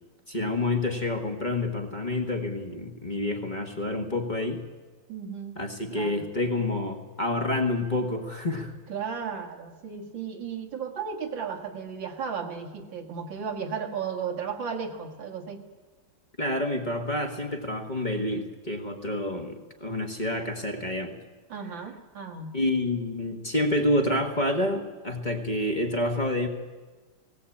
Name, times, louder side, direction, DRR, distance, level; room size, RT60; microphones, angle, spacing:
voice 1, 0.3-4.6 5.6-8.7 16.4-21.1 22.5-26.5, left 1 dB, 25° left, 3 dB, 1.6 m, -28 dB
voice 2, 5.1-5.6 5.9-6.2 8.9-15.6 21.5-22.5, right 6 dB, 80° right, 3 dB, 2.6 m, -34 dB
18.0 x 17.5 x 8.5 m, 1.3 s
omnidirectional pair, 2.0 m